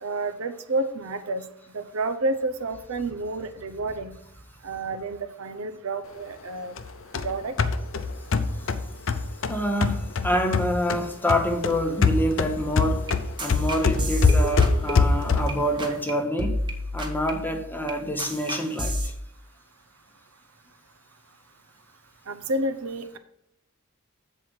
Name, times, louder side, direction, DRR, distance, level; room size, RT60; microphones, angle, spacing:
voice 1, 0.0-1.5 1.7-4.1 4.6-6.8 7.2-7.5 22.3-23.2, right 2 dB, 90° right, 0.7 m, -30 dB
sound 1, 6.8-11.0 11.3-15.7, left 4 dB, 65° left, 0.6 m, -23 dB
voice 2, 9.5-13.1 13.4-16.6 16.9-19.1, equal, 10° left, 0.9 m, -27 dB
sound 2, 12.6-15.5 15.8-16.1 16.4-19.1, equal, 20° right, 1.0 m, -32 dB
7.5 x 4.5 x 6.2 m
head